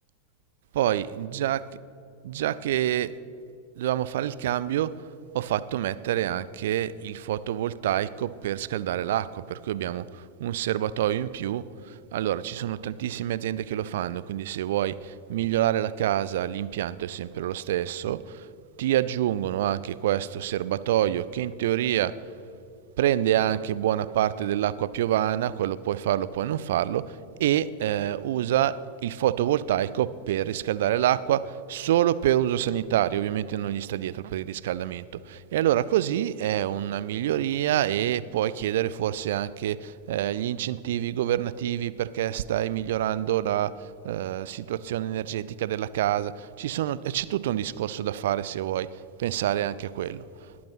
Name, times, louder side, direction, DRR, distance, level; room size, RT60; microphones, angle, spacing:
voice 1, 0.7-1.8 2.2-3.2 3.8-5.1 5.3-18.5 18.8-22.2 23.0-50.5, right 12 dB, 55° right, 0.4 m, -27 dB
20.5 x 8.6 x 5.7 m
figure-of-eight pair, 90°, 0 cm